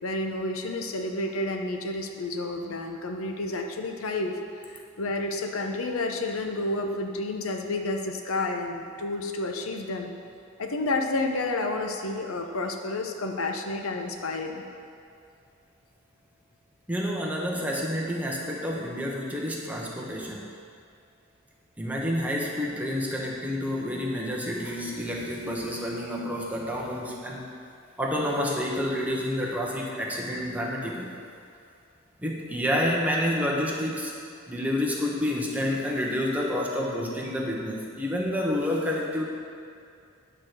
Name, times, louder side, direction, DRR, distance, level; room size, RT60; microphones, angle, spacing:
voice 1, 0.0-4.4 4.6-10.1 10.6-14.6, left 2 dB, 90° left, 4 dB, 0.8 m, -30 dB
voice 2, 16.9-20.5 21.8-27.5 28.0-31.1 32.2-34.1 34.5-39.2, left 1 dB, 5° right, -3 dB, 1.0 m, -29 dB
9.9 x 4.4 x 6.5 m, 2.3 s
head